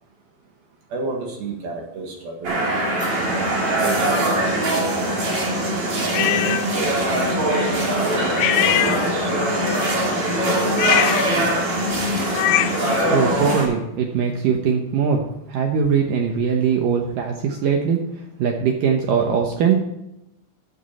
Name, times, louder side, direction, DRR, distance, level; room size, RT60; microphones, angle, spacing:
voice 1, 0.9-2.6 3.1-4.4 6.0-8.5 8.9-9.3, right 3 dB, 60° right, 1 dB, 3.0 m, -31 dB
sound 1, 2.4-13.6, right 1 dB, 35° right, 3.3 m, -22 dB
sound 2, 6.1-6.7 8.4-9.4 10.7-13.0, left 15 dB, 85° left, 3.0 m, -23 dB
voice 2, 13.1-18.0 18.4-19.8, right 7 dB, 85° right, 2 dB, 1.9 m, -21 dB
13.5 x 8.3 x 4.2 m, 0.89 s
omnidirectional pair, 5.4 m